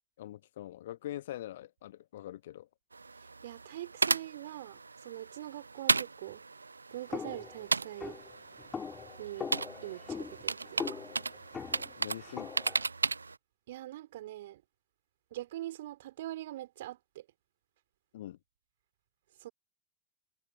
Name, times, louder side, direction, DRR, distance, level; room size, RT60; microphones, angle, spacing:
voice 1, 0.2-2.7 12.0-12.5 18.1-18.4, left 13 dB, 55° left, 1.2 m, -43 dB
sound 1, 2.9-13.4, right 4 dB, 80° right, 0.4 m, -35 dB
voice 2, 3.4-6.4 6.9-8.2 9.2-9.5 9.8-11.0 13.7-14.6 15.3-17.2 19.4-19.5, right 14 dB, 55° right, 3.9 m, -43 dB
sound 2, 7.1-12.9, left 6 dB, 15° left, 2.5 m, -42 dB
figure-of-eight pair, 90°, 0 cm